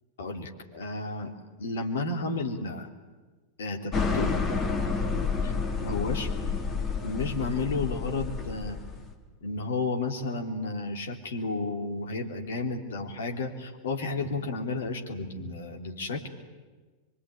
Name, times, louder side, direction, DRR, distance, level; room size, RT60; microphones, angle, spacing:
voice 1, 0.2-1.3 1.6-2.9 3.6-4.3 5.4-5.5 5.8-6.3 7.0-8.8 9.4-16.3, left 3 dB, 60° left, 4 dB, 3.3 m, -32 dB
sound 1, 3.9-9.1, left 4 dB, 25° left, 3.0 m, -29 dB
24.5 x 23.0 x 10.0 m, 1.3 s
figure-of-eight pair, 90°, 0 cm